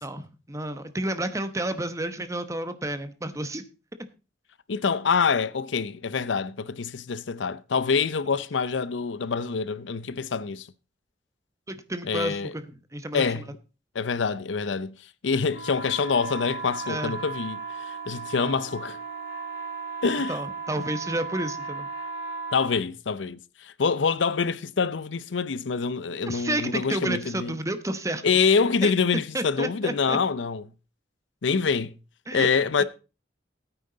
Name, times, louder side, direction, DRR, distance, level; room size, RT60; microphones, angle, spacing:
voice 1, 0.0-3.6 11.7-12.7 12.9-13.4 16.9-17.2 20.3-21.9 26.3-28.2 28.8-28.9 29.3-30.2 32.3-32.5, right 1 dB, 15° right, 1.0 m, -31 dB
voice 2, 4.7-10.7 12.0-12.5 13.1-13.5 13.9-15.0 15.2-17.6 17.9-19.0 20.0-20.4 22.5-27.6 28.2-30.6 31.4-31.9 32.3-32.8, left 5 dB, 85° left, 0.6 m, -26 dB
sound 1, 15.5-22.7, right 4 dB, 55° left, 3.2 m, -35 dB
14.5 x 9.0 x 3.9 m
head